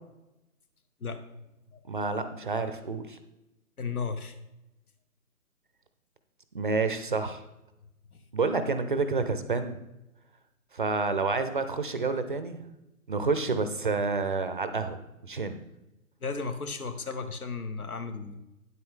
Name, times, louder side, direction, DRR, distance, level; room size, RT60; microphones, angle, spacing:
voice 1, 1.9-3.2 6.5-7.4 8.3-9.8 10.7-12.6 13.1-15.0 15.2-15.6, right 4 dB, 35° right, 10 dB, 0.5 m, -29 dB
voice 2, 3.8-4.3 16.2-18.3, left 4 dB, 75° left, 9 dB, 1.2 m, -34 dB
9.5 x 8.1 x 3.7 m, 0.94 s
figure-of-eight pair, 140°, 44 cm